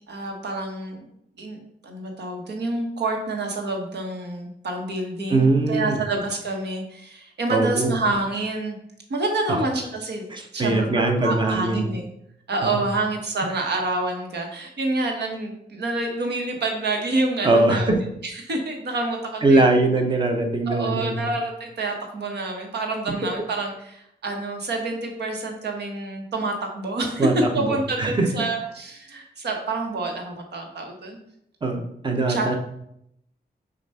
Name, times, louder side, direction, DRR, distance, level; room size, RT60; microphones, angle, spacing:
voice 1, 0.1-1.0 1.4-8.8 9.1-10.3 10.5-12.1 12.5-17.9 18.2-19.7 20.7-27.3 27.5-31.2 32.3-32.6, right 2 dB, 80° right, 2 dB, 1.3 m, -28 dB
voice 2, 5.3-6.0 7.5-8.0 9.5-9.6 10.3-11.9 12.6-12.7 17.4-17.9 19.4-21.3 27.2-28.3 31.6-32.5, right 2 dB, 30° right, 4 dB, 0.8 m, -21 dB
6.7 x 2.5 x 5.5 m, 0.76 s
wide cardioid pair, 145°, 17 cm